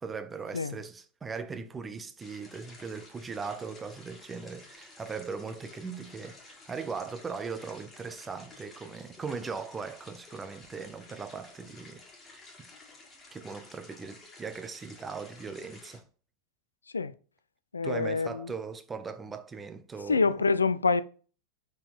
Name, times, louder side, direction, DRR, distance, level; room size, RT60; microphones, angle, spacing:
voice 1, 0.0-12.7 13.3-16.0 17.8-20.3, right 5 dB, 15° right, 0.6 m, -39 dB
sound 1, 2.2-16.0, left 3 dB, 15° left, 1.9 m, -53 dB
voice 2, 17.7-18.5 20.1-21.0, left 4 dB, 75° left, 0.3 m, -26 dB
5.3 x 4.5 x 4.1 m
figure-of-eight pair, 90°, 0 cm